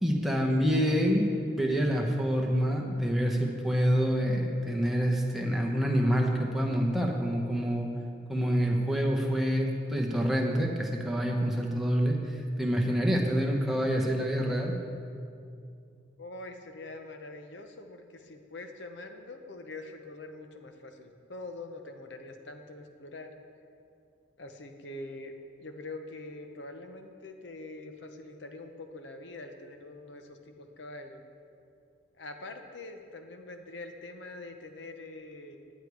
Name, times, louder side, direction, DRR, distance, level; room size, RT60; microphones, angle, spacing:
voice 1, 0.0-7.9 8.3-14.8, equal, ahead, -1 dB, 0.9 m, -27 dB
voice 2, 16.2-23.3 24.4-31.2 32.2-35.6, left 2 dB, 65° left, 5 dB, 0.8 m, -44 dB
10.5 x 8.2 x 4.7 m, 2.5 s
head